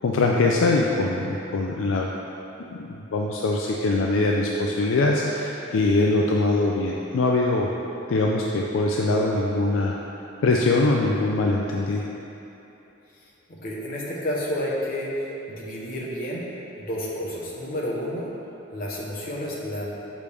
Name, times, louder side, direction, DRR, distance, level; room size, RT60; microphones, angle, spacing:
voice 1, 0.0-2.1 2.7-7.7 8.1-10.0 10.4-12.1, left 2 dB, 70° left, -1 dB, 0.4 m, -22 dB
voice 2, 13.5-16.5 16.8-18.3 18.7-19.9, equal, 45° left, -4 dB, 1.0 m, -30 dB
6.7 x 5.1 x 3.4 m, 3.0 s
head